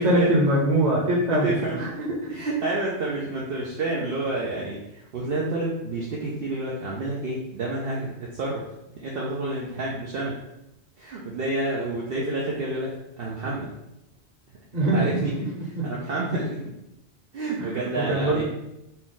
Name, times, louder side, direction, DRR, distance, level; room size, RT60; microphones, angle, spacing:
voice 1, 0.0-1.9 14.7-15.5 15.8-15.9 17.6-18.4, right 1 dB, 40° right, -3 dB, 1.1 m, -23 dB
voice 2, 1.2-1.8 2.3-8.6 8.9-10.3 11.0-13.7 14.9-15.3 15.8-16.6 17.3-18.4, right 2 dB, 60° right, -4 dB, 0.8 m, -29 dB
4.2 x 2.3 x 3.8 m, 0.87 s
omnidirectional pair, 1.1 m